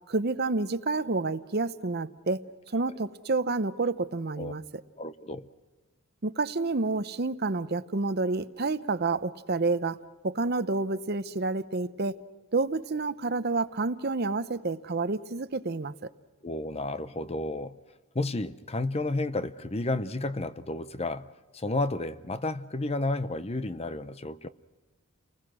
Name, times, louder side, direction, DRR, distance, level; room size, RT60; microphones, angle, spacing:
voice 1, 0.1-2.4 2.7-4.6 6.2-10.0 10.2-12.2 12.5-15.9, right 3 dB, 45° right, 0.7 m, -29 dB
voice 2, 5.0-5.5 16.4-17.8 18.1-24.5, left 2 dB, 25° left, 0.6 m, -32 dB
30.0 x 20.5 x 6.2 m
head